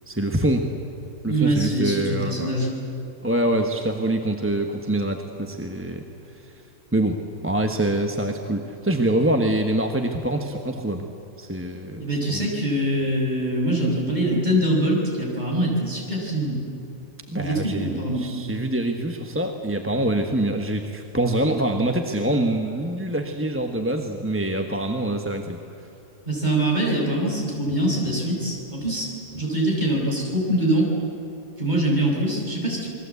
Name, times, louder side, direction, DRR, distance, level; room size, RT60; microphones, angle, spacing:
voice 1, 0.1-0.7 1.2-2.5 3.2-6.0 6.3-6.5 6.9-7.2 7.4-11.1 11.4-12.5 17.3-25.6, right 1 dB, 10° right, 3 dB, 1.2 m, -25 dB
voice 2, 1.3-2.7 12.0-16.6 17.3-18.3 26.3-30.9 31.6-32.9, right 1 dB, 30° right, -2 dB, 6.4 m, -23 dB
28.0 x 21.5 x 8.3 m, 2.7 s
omnidirectional pair, 1.5 m